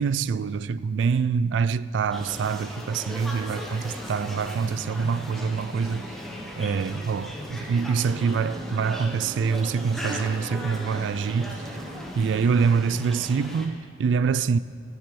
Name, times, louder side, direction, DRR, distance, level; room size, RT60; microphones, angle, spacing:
voice 1, 0.0-6.1 6.6-11.6 12.1-14.6, right 5 dB, 85° right, 0.3 m, -25 dB
sound 1, 2.1-13.7, equal, ahead, 1.1 m, -37 dB
Brass instrument, 7.8-12.2, right 8 dB, 25° right, 0.7 m, -46 dB
14.5 x 6.5 x 6.9 m
head